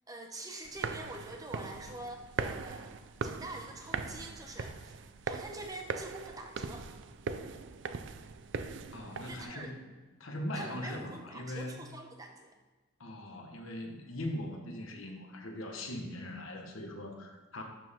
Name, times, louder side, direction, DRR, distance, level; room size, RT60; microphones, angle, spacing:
voice 1, 0.1-5.0 5.3-6.9 9.3-9.7 10.5-12.5, right 2 dB, 20° right, 3 dB, 0.8 m, -45 dB
sound 1, 0.6-9.4, right 4 dB, 60° right, 0.4 m, -40 dB
voice 2, 8.9-9.8 10.2-11.8 13.0-17.6, left 1 dB, 80° left, 2 dB, 1.3 m, -40 dB
11.5 x 4.6 x 3.6 m, 1.2 s
head